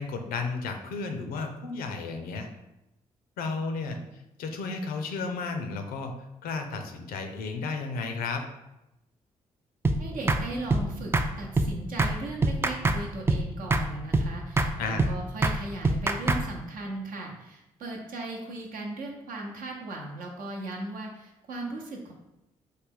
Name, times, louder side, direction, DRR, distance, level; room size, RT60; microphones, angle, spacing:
voice 1, 0.0-2.5 3.4-4.0 4.4-6.1 6.4-8.5 14.8-15.1, left 4 dB, 75° left, 5 dB, 0.5 m, -33 dB
sound 1, 9.8-10.0 10.3-10.4 10.7-10.9 11.1-11.3 11.6-11.7 12.0-12.1 12.4-13.0 13.3-13.4 13.7-13.9 14.1-14.3 14.6-14.7 15.0-15.1 15.4-15.6 15.8-16.4, right 2 dB, 15° right, 0.3 m, -23 dB
voice 2, 10.0-22.1, right 2 dB, 65° right, 0 dB, 0.8 m, -37 dB
3.2 x 2.2 x 3.6 m, 0.92 s
hypercardioid pair, 45°, 15 cm